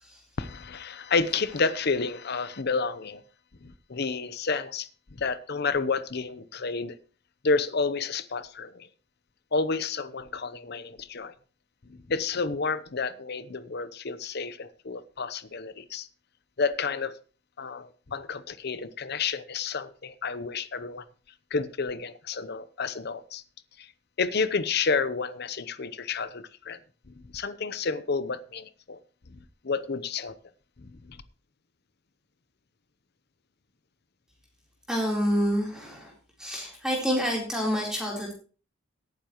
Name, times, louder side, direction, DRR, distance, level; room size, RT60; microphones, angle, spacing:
voice 1, 0.4-3.2 3.6-7.0 7.4-8.9 9.5-11.3 11.8-16.1 16.6-17.1 17.6-21.0 21.5-23.4 23.8-23.9 24.2-26.8 27.1-29.0 29.3-30.3 30.8-31.2, left 4 dB, 55° left, 0.8 m, -30 dB
voice 2, 34.9-36.1 36.4-38.3, equal, 5° right, 3.7 m, -28 dB
17.5 x 9.7 x 3.1 m
head